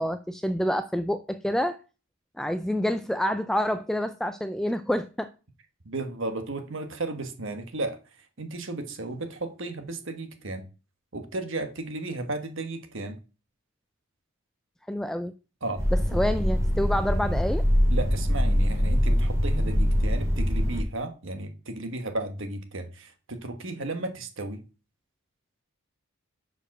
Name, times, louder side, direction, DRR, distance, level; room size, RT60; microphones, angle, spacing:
voice 1, 0.0-1.8 2.4-5.3 14.9-15.3 15.9-17.6, equal, ahead, 0.3 m, -27 dB
voice 2, 5.8-8.0 8.4-10.6 11.1-13.2 15.6-15.8 16.1-16.2 17.9-24.6, right 2 dB, 55° right, 1.3 m, -34 dB
sound 1, 15.8-20.8, equal, 15° right, 2.9 m, -23 dB
6.8 x 5.0 x 5.9 m
head